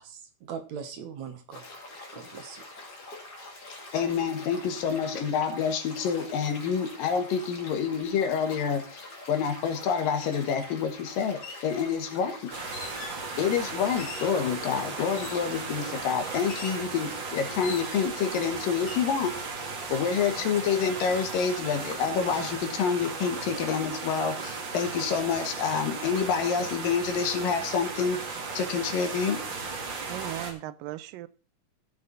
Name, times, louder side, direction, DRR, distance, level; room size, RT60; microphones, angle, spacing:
voice 1, 0.0-1.7 2.1-2.6, right 7 dB, 65° right, 7 dB, 2.3 m, -40 dB
sound 1, 1.5-16.8, left 2 dB, 30° left, 2.6 m, -45 dB
voice 2, 3.9-12.5 13.4-19.4 19.9-29.4, left 6 dB, 80° left, 7 dB, 3.2 m, -28 dB
sound 2, 10.3-10.4 11.3-11.7 12.7-13.2 14.0-14.4 15.1-15.6 16.5-16.9 17.6-18.2 18.7-19.1, left 5 dB, 60° left, 3.1 m, -42 dB
sound 3, 12.5-30.5, right 4 dB, 40° right, 1.9 m, -36 dB
voice 3, 30.1-31.3, right 15 dB, 85° right, 16 dB, 2.3 m, -37 dB
15.0 x 6.6 x 4.0 m, 0.35 s
omnidirectional pair, 3.9 m